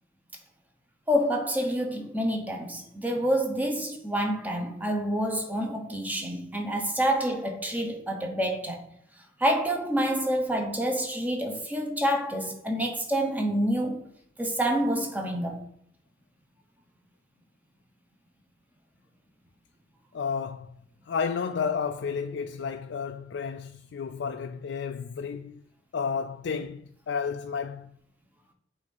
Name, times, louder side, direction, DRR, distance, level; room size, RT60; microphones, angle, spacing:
voice 1, 1.1-8.9 9.4-14.0 14.4-15.6, equal, 10° right, 0.9 m, -27 dB
voice 2, 20.1-20.8 21.1-25.6 25.9-28.0, left 6 dB, 65° left, 0.4 m, -32 dB
8.0 x 2.7 x 5.3 m
head